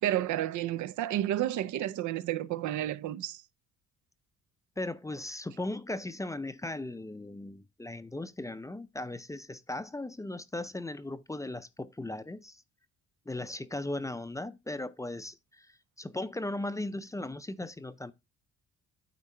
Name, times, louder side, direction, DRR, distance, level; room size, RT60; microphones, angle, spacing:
voice 1, 0.0-3.4, right 13 dB, 75° right, 0.5 m, -31 dB
voice 2, 4.8-12.6 13.3-18.1, left 2 dB, 10° left, 0.4 m, -37 dB
9.1 x 3.7 x 4.2 m
cardioid pair, 90°, 30 cm